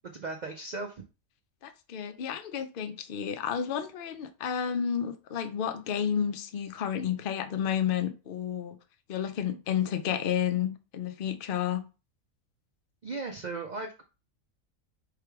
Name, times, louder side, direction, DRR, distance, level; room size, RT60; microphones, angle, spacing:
voice 1, 0.0-1.0 13.0-14.0, right 3 dB, 60° right, 0.4 m, -37 dB
voice 2, 1.6-8.8 9.1-11.8, left 8 dB, 55° left, 0.6 m, -31 dB
3.4 x 3.3 x 4.6 m
omnidirectional pair, 1.4 m